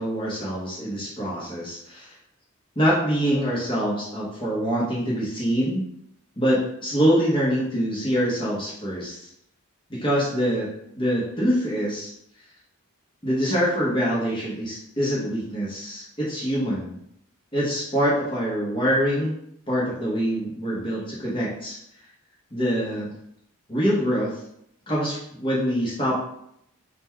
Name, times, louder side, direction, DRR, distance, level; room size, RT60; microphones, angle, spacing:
voice 1, 0.0-2.1 2.8-5.8 6.4-9.3 9.9-10.7 10.9-12.1 13.2-16.9 17.5-19.3 19.7-21.8 22.5-23.1 23.7-24.3 24.9-26.2, equal, 25° left, -6 dB, 0.9 m, -24 dB
3.9 x 2.2 x 4.4 m, 0.74 s
head